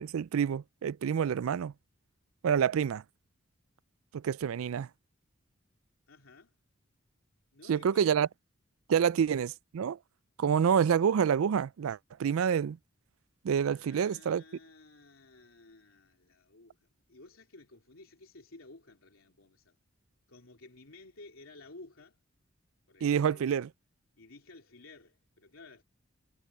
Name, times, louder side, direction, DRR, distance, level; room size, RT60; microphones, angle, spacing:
voice 1, 0.0-1.7 2.4-3.0 4.1-4.9 7.7-8.3 8.9-10.0 10.4-12.8 13.4-14.4 23.0-23.7, right 7 dB, 90° right, 0.4 m, -27 dB
voice 2, 6.1-6.5 7.5-8.2 9.2-9.5 10.5-10.8 13.7-19.8 20.3-22.2 22.9-23.7 24.2-25.8, left 2 dB, 85° left, 3.2 m, -54 dB
head